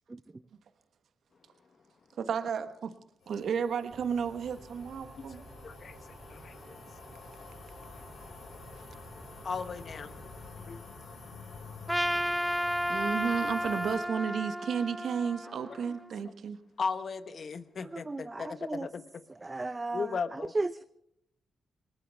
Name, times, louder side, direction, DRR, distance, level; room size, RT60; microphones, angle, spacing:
voice 1, 2.2-2.9 3.3-5.4 12.9-16.6, right 7 dB, 70° right, 10 dB, 1.2 m, -33 dB
sound 1, 3.2-14.0, left 4 dB, 75° left, 5.7 m, -49 dB
sound 2, 3.9-10.5, right 2 dB, 55° right, 3.6 m, -52 dB
voice 2, 5.6-5.9 6.3-6.8 9.4-10.1 10.5-10.8 16.2-16.3 16.8-19.2 19.9-20.5, left 5 dB, 60° left, 11 dB, 1.2 m, -36 dB
Trumpet, 11.9-16.2, equal, 5° right, 1.1 m, -32 dB
voice 3, 17.9-18.9 19.4-20.2 20.5-20.8, right 2 dB, 30° right, 13 dB, 0.6 m, -34 dB
20.5 x 20.0 x 3.5 m, 0.79 s
supercardioid pair, 50°, 0 cm